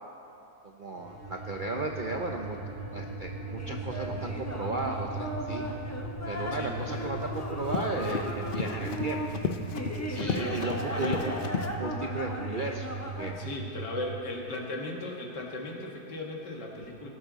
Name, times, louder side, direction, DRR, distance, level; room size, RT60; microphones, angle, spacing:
voice 1, 0.6-2.6 2.9-5.6 6.3-9.2 10.1-11.4 11.8-13.4, right 2 dB, 55° right, 1 dB, 0.5 m, -35 dB
sound 1, 0.9-14.2, right 2 dB, 40° right, 1.8 m, -38 dB
sound 2, 3.6-13.4, equal, 15° left, 0.7 m, -37 dB
Run, 6.9-11.7, left 6 dB, 65° left, 0.5 m, -35 dB
voice 2, 10.1-11.2 13.4-17.1, left 1 dB, 85° left, 0 dB, 2.2 m, -37 dB
18.5 x 12.0 x 4.0 m, 2.8 s
omnidirectional pair, 1.8 m